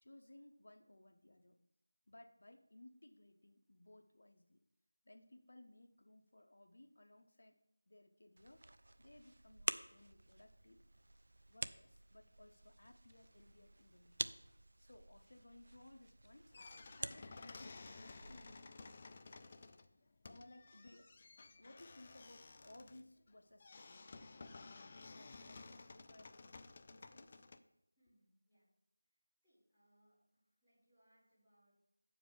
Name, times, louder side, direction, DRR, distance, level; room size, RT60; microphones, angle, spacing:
voice 1, 0.0-1.6 2.1-4.6 5.0-7.6 7.9-8.7 9.0-10.8 11.5-14.3 14.8-16.5 16.9-18.9 20.2-21.1 21.6-24.2 25.1-26.5 26.8-27.5, left 1 dB, 65° left, 7 dB, 0.9 m, -61 dB
Snap buttons, 8.4-18.5, right 2 dB, 60° right, 0.4 m, -49 dB
sound 1, 16.5-27.6, left 3 dB, 25° left, 0.3 m, -55 dB
voice 2, 28.0-28.7 29.4-30.2 30.4-31.8, right 1 dB, 5° right, -17 dB, 3.2 m, -75 dB
7.5 x 5.0 x 6.6 m, 0.82 s
figure-of-eight pair, 175°, 0 cm